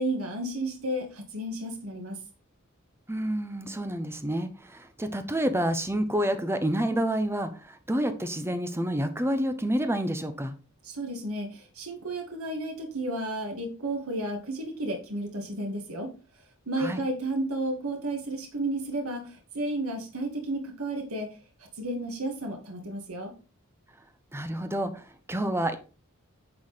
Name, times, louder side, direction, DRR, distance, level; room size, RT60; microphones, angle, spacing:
voice 1, 0.0-2.2 10.8-16.1 16.7-21.3 21.8-23.3, right 1 dB, 70° right, 2 dB, 1.9 m, -32 dB
voice 2, 3.1-10.5 16.8-17.0 24.3-25.8, right 1 dB, 10° right, 9 dB, 0.9 m, -29 dB
9.6 x 4.8 x 4.1 m, 0.33 s
head